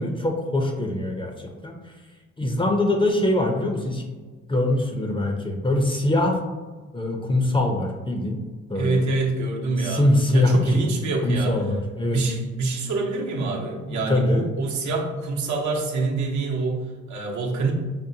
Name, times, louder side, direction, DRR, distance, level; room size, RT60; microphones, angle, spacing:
voice 1, 0.0-1.3 1.6-1.8 2.4-4.0 4.5-6.4 6.9-8.4 8.7-9.1 9.8-10.9 11.2-12.2 13.9-14.5, left 1 dB, 15° left, 2 dB, 0.5 m, -23 dB
voice 2, 8.7-10.1 10.3-11.6 12.1-17.7, right 3 dB, 75° right, -1 dB, 0.8 m, -26 dB
5.2 x 2.1 x 2.7 m, 1.3 s
cardioid pair, 90°, 30 cm